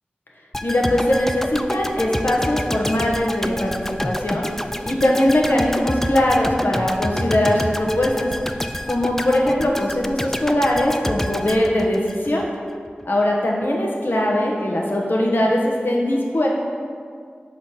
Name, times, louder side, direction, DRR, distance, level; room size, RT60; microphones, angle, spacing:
sound 1, 0.5-12.5 12.9-13.0, left 1 dB, 10° left, 0.3 m, -28 dB
voice 1, 0.6-4.5 4.8-8.3 8.9-12.5 13.0-16.5, left 1 dB, 65° left, -2 dB, 1.1 m, -20 dB
6.5 x 4.0 x 5.6 m, 2.2 s
wide cardioid pair, 55°, 4 cm